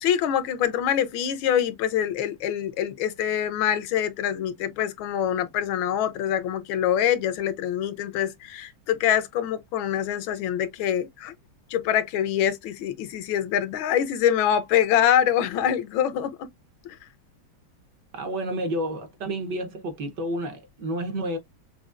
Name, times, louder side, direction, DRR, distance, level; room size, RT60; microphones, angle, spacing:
voice 1, 0.0-11.3 11.7-16.3 16.8-16.9, left 10 dB, 80° left, 1.4 m, -25 dB
voice 2, 18.1-21.4, right 1 dB, 60° right, 1.4 m, -30 dB
6.1 x 2.3 x 2.4 m
omnidirectional pair, 2.3 m